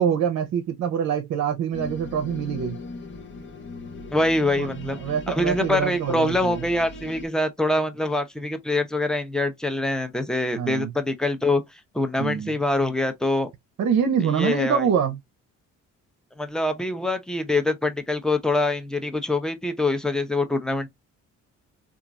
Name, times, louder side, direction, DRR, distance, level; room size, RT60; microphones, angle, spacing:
voice 1, 0.0-2.8 4.6-6.6 10.5-10.9 12.2-12.5 13.8-15.2, right 7 dB, 60° right, 0.6 m, -25 dB
sound 1, 1.7-7.3, left 2 dB, 40° left, 0.7 m, -39 dB
voice 2, 4.1-5.0 5.3-13.5 14.4-14.9 16.4-20.9, left 2 dB, ahead, 0.6 m, -24 dB
2.9 x 2.4 x 2.4 m
cardioid pair, 90°, 30 cm